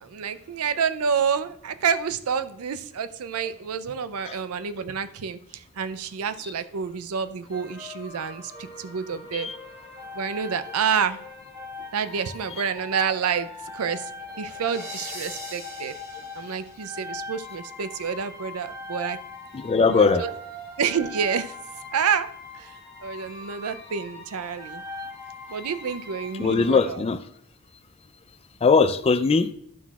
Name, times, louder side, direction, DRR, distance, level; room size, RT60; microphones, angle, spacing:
voice 1, 0.0-9.5 10.1-11.2 11.9-14.1 14.4-15.9 16.4-19.2 19.9-20.3 20.8-21.6 21.9-22.7 23.0-24.8 25.5-27.0, right 6 dB, 85° right, 12 dB, 0.5 m, -28 dB
sound 1, 7.5-26.9, left 2 dB, 15° right, 2.6 m, -40 dB
voice 2, 19.5-20.3 26.3-27.3 28.6-29.5, left 4 dB, 30° left, 12 dB, 0.3 m, -21 dB
12.0 x 5.7 x 2.3 m, 0.67 s
head